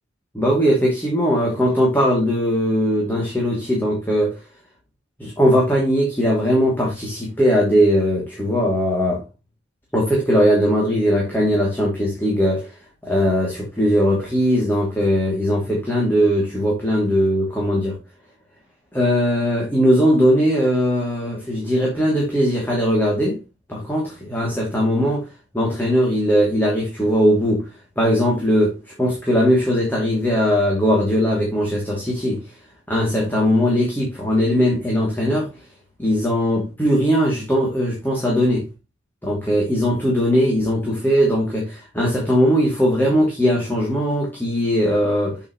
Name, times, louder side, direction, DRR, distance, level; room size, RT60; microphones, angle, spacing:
voice 1, 0.3-4.4 5.2-9.2 9.9-12.7 13.1-18.0 18.9-23.4 23.7-25.2 25.5-27.7 28.0-32.4 32.9-35.5 36.0-38.6 39.2-45.4, equal, 10° left, 2.6 m, -19 dB
8.4 x 7.0 x 3.0 m
head